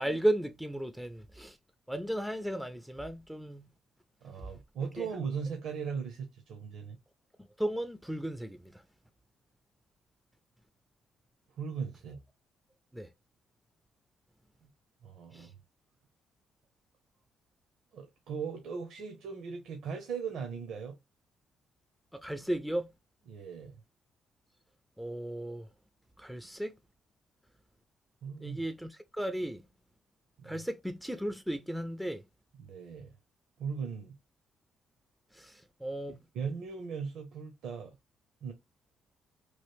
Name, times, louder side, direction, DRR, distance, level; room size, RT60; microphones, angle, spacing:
voice 1, 0.0-1.6 1.9-3.7 4.8-5.1 7.6-8.8 12.9-13.1 15.3-15.5 22.1-22.9 25.0-25.7 26.2-26.8 28.4-29.6 30.4-32.2 35.3-36.2, right 1 dB, ahead, 0.4 m, -35 dB
voice 2, 4.2-7.0 11.6-12.2 14.6-14.7 15.0-15.5 17.9-21.0 23.3-23.7 28.2-28.6 30.4-30.6 32.6-33.1 33.6-34.2 36.3-38.0 38.4-38.5, right 6 dB, 75° right, 0.7 m, -38 dB
3.1 x 2.5 x 3.1 m
cardioid pair, 90°, 0 cm